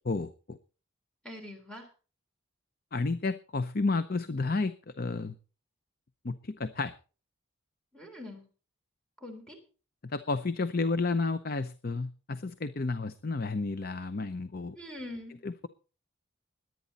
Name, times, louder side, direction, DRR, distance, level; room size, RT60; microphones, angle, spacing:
voice 1, 0.1-0.6 2.9-5.3 6.2-6.9 10.0-14.8 15.4-15.7, left 3 dB, 45° left, 12 dB, 0.6 m, -31 dB
voice 2, 1.2-1.9 7.9-8.4 9.2-9.6 14.7-15.4, left 1 dB, 5° left, 3 dB, 3.5 m, -43 dB
20.5 x 9.4 x 4.2 m, 0.37 s
head